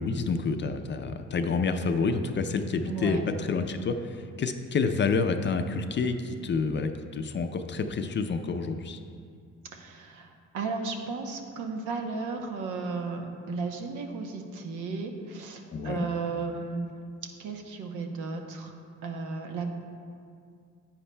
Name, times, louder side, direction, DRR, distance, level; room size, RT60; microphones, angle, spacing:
voice 1, 0.0-9.0 15.7-16.1, left 4 dB, 40° left, 7 dB, 0.5 m, -28 dB
voice 2, 2.9-3.2 9.7-16.9 17.4-18.8 19.0-19.7, right 4 dB, 85° right, 4 dB, 0.8 m, -34 dB
10.0 x 8.6 x 2.2 m, 2.3 s
cardioid pair, 90°, 30 cm